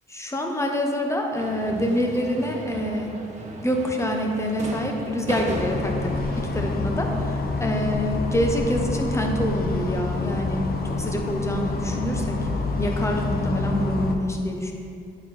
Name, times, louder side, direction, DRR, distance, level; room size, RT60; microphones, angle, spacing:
voice 1, 0.1-3.2 3.6-6.1 6.4-12.4 12.8-14.7, equal, 15° left, 2 dB, 1.0 m, -26 dB
sound 1, 1.3-6.5, right 1 dB, 35° right, 1.3 m, -35 dB
sound 2, 5.5-14.2, left 3 dB, 50° left, 0.8 m, -27 dB
9.4 x 4.0 x 4.6 m, 2.5 s
cardioid pair, 90°, 20 cm